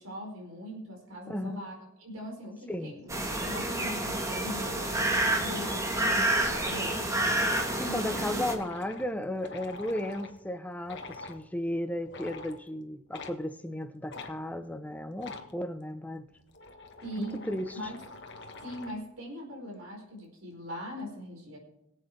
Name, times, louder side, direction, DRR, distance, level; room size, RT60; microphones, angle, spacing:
voice 1, 0.0-3.1 3.4-5.8 6.6-7.0 7.8-8.2 17.0-17.9 18.6-21.6, equal, 85° right, 4.7 m, -41 dB
voice 2, 1.3-1.6 2.7-2.9 7.7-16.3 17.2-17.8, left 1 dB, 5° left, 0.7 m, -35 dB
sound 1, 3.1-8.5, right 1 dB, 15° right, 1.4 m, -29 dB
sound 2, 5.5-10.4 10.8-11.4 12.1-12.6 13.1-13.4 14.1-14.3 15.2-15.5 16.3-19.0, left 3 dB, 55° left, 1.3 m, -45 dB
23.0 x 8.1 x 3.4 m
head